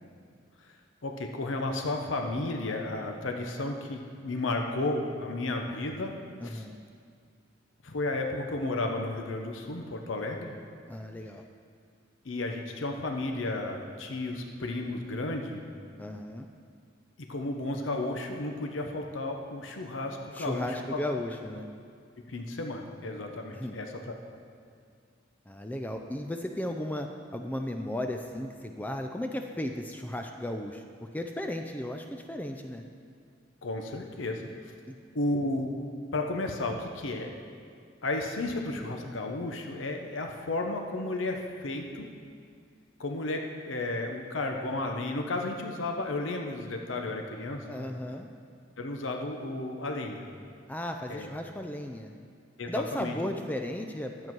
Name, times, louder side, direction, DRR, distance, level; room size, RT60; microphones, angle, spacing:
voice 1, 1.0-6.2 6.4-6.6 7.8-10.5 12.2-15.6 17.3-21.0 22.3-24.2 33.6-34.7 35.1-35.7 36.1-37.3 38.0-42.1 43.0-47.9 48.8-50.2 51.1-51.3 52.6-53.2, left 2 dB, 85° left, 3 dB, 0.8 m, -33 dB
voice 2, 6.4-6.8 10.9-11.4 16.0-16.5 20.3-21.7 23.5-23.8 25.5-32.9 34.9-35.0 47.6-48.3 50.7-52.2 52.7-54.3, left 1 dB, 10° left, 4 dB, 0.4 m, -35 dB
12.0 x 7.7 x 4.6 m, 2.2 s
head